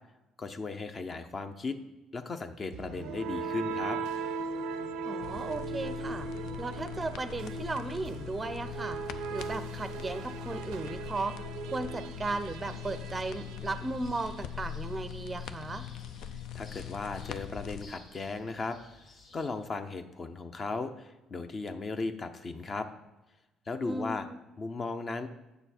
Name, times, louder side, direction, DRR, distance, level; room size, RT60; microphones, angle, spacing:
voice 1, 0.4-1.8 2.1-4.0 16.5-18.8 19.3-22.9 23.7-24.3 24.6-25.3, left 3 dB, 30° left, 8 dB, 0.6 m, -36 dB
sound 1, 2.7-14.6, right 5 dB, 90° right, 0.6 m, -39 dB
voice 2, 5.0-6.3 6.6-9.0 9.3-15.9 23.8-24.4, right 3 dB, 20° right, 10 dB, 0.5 m, -36 dB
sound 2, 5.2-17.8, left 10 dB, 75° left, 0.5 m, -42 dB
sound 3, 12.5-19.5, left 3 dB, 55° left, 1.9 m, -57 dB
8.1 x 6.9 x 4.3 m, 1.0 s
cardioid pair, 120°, 0 cm